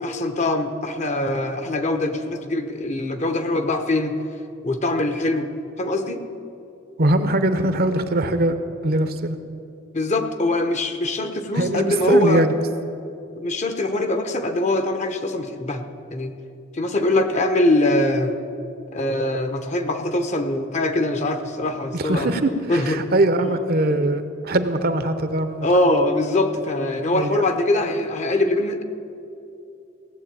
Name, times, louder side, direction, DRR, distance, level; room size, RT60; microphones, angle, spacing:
voice 1, 0.0-4.2 4.6-5.5 5.8-6.2 9.9-12.5 13.4-15.8 16.1-16.3 16.7-18.3 18.9-22.3 22.7-23.0 25.6-28.8, left 1 dB, 35° left, 8 dB, 0.9 m, -22 dB
voice 2, 7.0-8.6 8.8-9.4 11.5-12.6 21.9-25.7 27.1-27.4, right 1 dB, 50° right, 10 dB, 0.8 m, -21 dB
17.0 x 7.6 x 8.8 m, 2.7 s
head